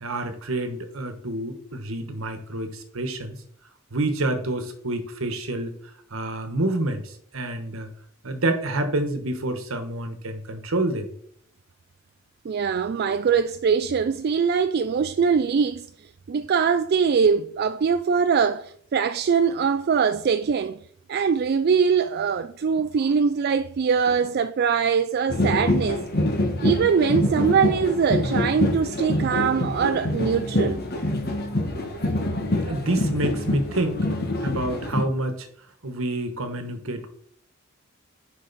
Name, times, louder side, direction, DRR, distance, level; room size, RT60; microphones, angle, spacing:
voice 1, 0.0-3.4 3.9-5.7 6.1-7.9 8.2-11.1 32.7-34.1 34.4-35.5 35.8-37.1, right 2 dB, 70° right, 1.3 m, -28 dB
voice 2, 12.4-15.9 16.3-20.8 21.1-26.0 26.6-30.8, right 6 dB, 50° right, 0.3 m, -22 dB
sound 1, 25.3-35.0, left 1 dB, 50° left, 1.5 m, -25 dB
10.0 x 5.3 x 4.1 m
head